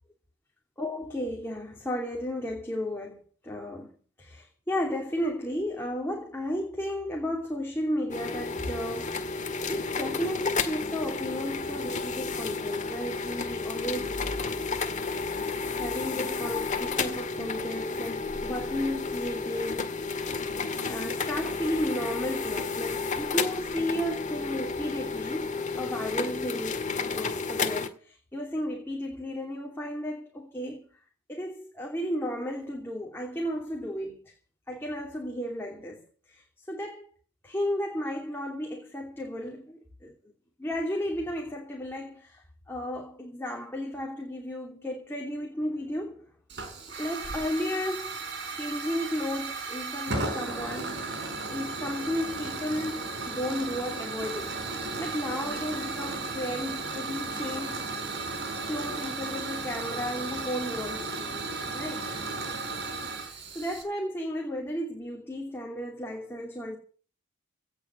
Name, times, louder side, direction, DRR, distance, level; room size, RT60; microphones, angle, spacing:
voice 1, 0.8-3.9 4.2-14.2 15.4-20.0 20.9-30.9 31.3-34.2 34.7-36.0 36.3-37.1 37.4-40.1 40.6-46.3 47.0-48.2 48.5-51.1 51.5-57.9 58.7-61.5 61.7-62.1 63.5-66.8, equal, 10° left, 2.9 m, -34 dB
sound 1, 8.1-27.9, left 4 dB, 35° left, 1.9 m, -32 dB
Hiss / Fire, 46.5-63.8, right 3 dB, 50° right, 5.5 m, -35 dB
18.0 x 7.3 x 8.3 m
head